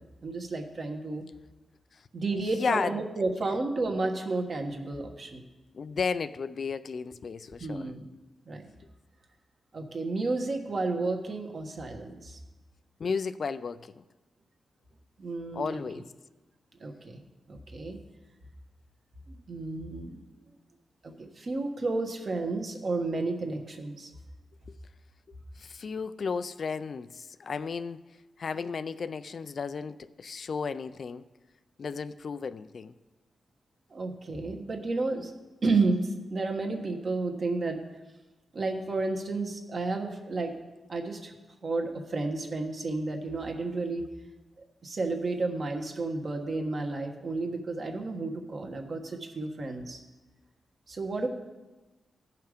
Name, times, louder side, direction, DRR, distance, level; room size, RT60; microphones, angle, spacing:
voice 1, 0.2-1.2 2.1-5.4 7.6-8.1 8.5-8.7 9.7-12.4 15.2-15.8 16.8-17.2 17.5-18.0 19.3-20.2 21.0-24.1 33.9-35.3 35.6-37.8 38.5-40.5 40.9-41.3 41.6-44.0 44.8-50.0 50.9-51.3, right 3 dB, 45° right, 3 dB, 1.4 m, -31 dB
voice 2, 2.3-3.0 5.7-7.9 13.0-14.0 15.5-16.0 25.6-28.1 28.4-31.2 31.8-32.9, left 5 dB, 55° left, 13 dB, 0.4 m, -33 dB
16.0 x 5.7 x 5.1 m, 1.2 s
cardioid pair, 100°, 0 cm